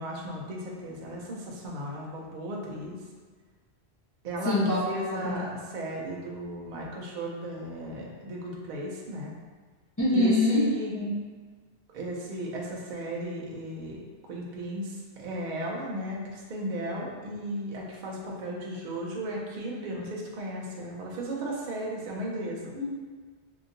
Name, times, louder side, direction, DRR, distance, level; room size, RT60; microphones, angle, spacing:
voice 1, 0.0-3.0 4.2-4.6 4.9-9.3 10.1-10.9 11.9-22.7, right 1 dB, 55° right, -3 dB, 0.6 m, -35 dB
voice 2, 4.4-5.4 10.0-10.6 10.9-11.1 22.7-22.8, left 1 dB, 30° left, -9 dB, 0.4 m, -25 dB
2.8 x 2.6 x 2.5 m, 1.5 s
omnidirectional pair, 1.1 m